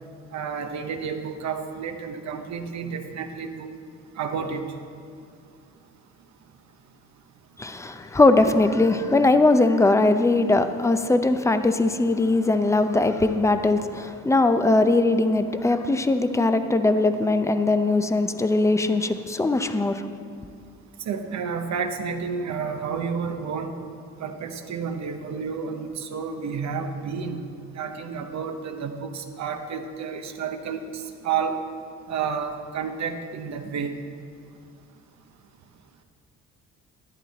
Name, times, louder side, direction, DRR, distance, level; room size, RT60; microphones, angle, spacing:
voice 1, 0.3-3.7 4.2-4.6 21.1-23.7 24.2-27.4 27.7-31.6 32.1-34.0, right 6 dB, 65° right, 0.9 m, -30 dB
voice 2, 7.6-20.1, left 2 dB, 10° left, 0.6 m, -20 dB
11.0 x 10.5 x 4.1 m
cardioid pair, 90°, 30 cm